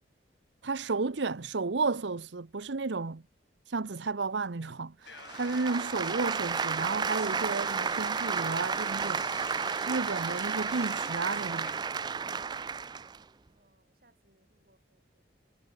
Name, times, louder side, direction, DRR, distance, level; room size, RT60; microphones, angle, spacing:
voice 1, 0.6-3.2 3.7-9.2 9.9-11.7, right 4 dB, 85° right, 0.8 m, -32 dB
sound 1, 5.1-11.7, left 6 dB, 75° left, 3.9 m, -47 dB
sound 2, 5.1-13.2, right 6 dB, 25° right, 0.3 m, -32 dB
voice 2, 13.5-15.6, right 2 dB, 55° right, 7.4 m, -70 dB
head